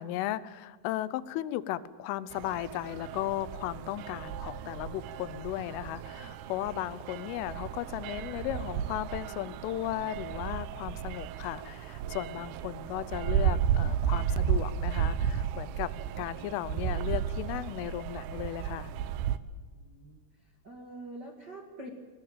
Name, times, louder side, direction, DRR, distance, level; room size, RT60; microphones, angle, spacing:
voice 1, 0.0-15.9 16.2-18.9, left 14 dB, 85° left, 17 dB, 3.4 m, -36 dB
sound 1, 2.3-19.4, right 9 dB, 80° right, 2.4 m, -33 dB
voice 2, 19.7-20.2 20.6-21.9, right 1 dB, 45° right, 1 dB, 1.3 m, -45 dB
21.0 x 19.0 x 9.0 m, 1.4 s
omnidirectional pair, 5.6 m